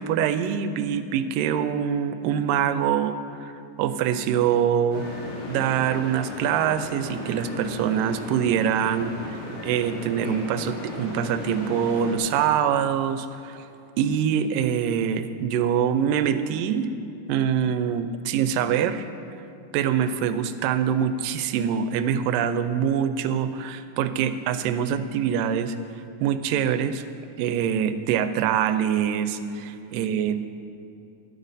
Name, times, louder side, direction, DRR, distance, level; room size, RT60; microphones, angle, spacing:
voice 1, 0.0-3.1 3.4-3.5 3.8-5.0 5.5-13.6 14.0-16.9 17.3-19.1 19.7-25.8 26.2-27.0 27.4-30.4, right 8 dB, 90° right, 11 dB, 2.2 m, -24 dB
sound 1, 4.9-12.2, left 1 dB, 85° left, 4.4 m, -36 dB
12.0 x 12.0 x 4.1 m, 2.8 s
omnidirectional pair, 3.8 m